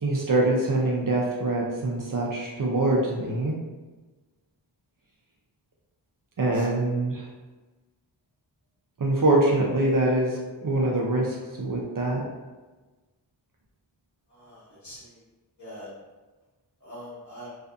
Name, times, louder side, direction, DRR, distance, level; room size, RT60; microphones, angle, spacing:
voice 1, 0.0-3.5 6.4-7.3 9.0-12.2, right 2 dB, 45° right, -2 dB, 0.5 m, -24 dB
voice 2, 14.3-15.2 15.6-15.9 16.8-17.5, equal, 40° left, -8 dB, 1.2 m, -43 dB
2.5 x 2.5 x 2.3 m, 1.2 s
wide cardioid pair, 50°, 45 cm